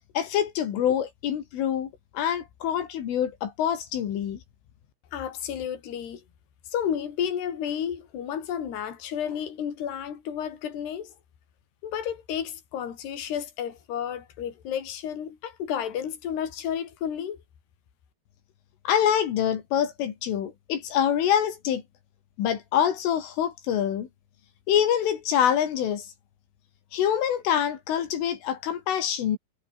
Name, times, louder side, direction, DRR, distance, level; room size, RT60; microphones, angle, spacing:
voice 1, 0.2-1.9 2.2-4.4 18.9-21.8 22.4-24.1 24.7-26.1 26.9-29.4, left 9 dB, 80° left, 5.3 m, -25 dB
voice 2, 5.1-6.2 6.7-11.1 11.8-17.4, left 9 dB, 60° left, 5.4 m, -32 dB
omnidirectional pair, 5.6 m